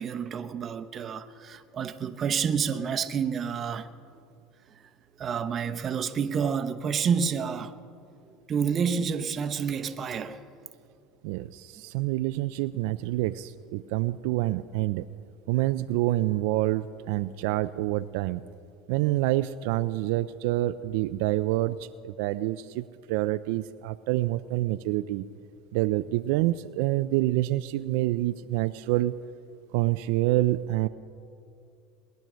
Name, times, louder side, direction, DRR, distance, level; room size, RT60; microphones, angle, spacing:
voice 1, 0.0-3.9 4.1-4.2 5.2-7.7 8.5-10.4, right 6 dB, 35° right, 0.9 m, -29 dB
voice 2, 11.2-15.1 15.5-18.4 18.9-25.3 25.7-29.1 29.7-30.9, right 16 dB, 75° right, 0.4 m, -27 dB
21.0 x 10.5 x 6.3 m
supercardioid pair, 120°, 0 cm